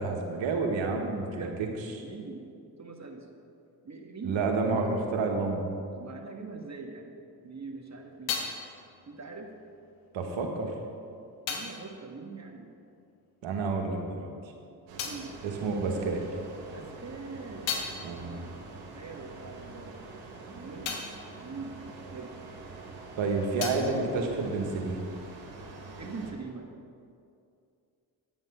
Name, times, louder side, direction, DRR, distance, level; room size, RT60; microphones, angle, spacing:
voice 1, 0.0-2.0 4.2-5.7 10.1-10.7 13.4-14.3 15.4-16.2 18.0-18.3 23.2-25.0, right 3 dB, 70° right, 2 dB, 1.7 m, -30 dB
voice 2, 1.0-1.7 2.0-2.5 2.8-3.3 3.8-4.5 5.6-5.7 6.0-8.4 9.1-9.5 11.1-11.2 11.5-12.7 15.0-15.3 16.7-17.8 18.1-18.5 18.9-20.2 20.5-21.1 21.4-21.8 22.1-22.4 26.0-26.7, right 4 dB, 35° right, 2 dB, 1.8 m, -43 dB
sound 1, 7.4-13.5 13.7-16.4 16.8-22.9 23.1-25.1, left 6 dB, 85° left, 1.3 m, -41 dB
sound 2, 14.9-26.3, right 3 dB, 85° right, 1.6 m, -45 dB
9.7 x 9.0 x 5.7 m, 2.5 s
hypercardioid pair, 50°, 47 cm